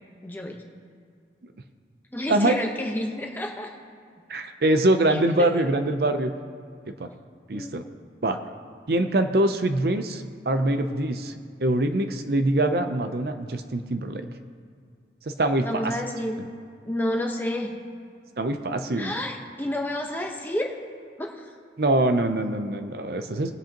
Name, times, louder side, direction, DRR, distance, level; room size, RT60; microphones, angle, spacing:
voice 1, 0.2-0.6 2.1-3.7 5.1-5.2 7.5-7.8 15.6-16.4 16.8-17.7 18.9-20.7 21.2-21.5, left 1 dB, 10° left, 1 dB, 1.0 m, -30 dB
voice 2, 4.3-6.3 7.0-7.1 7.5-7.8 8.2-8.4 8.9-11.3 11.6-14.3 15.3-15.9 18.4-19.1 21.8-23.5, right 1 dB, 60° right, 8 dB, 0.6 m, -24 dB
19.5 x 7.7 x 2.9 m, 2.3 s
head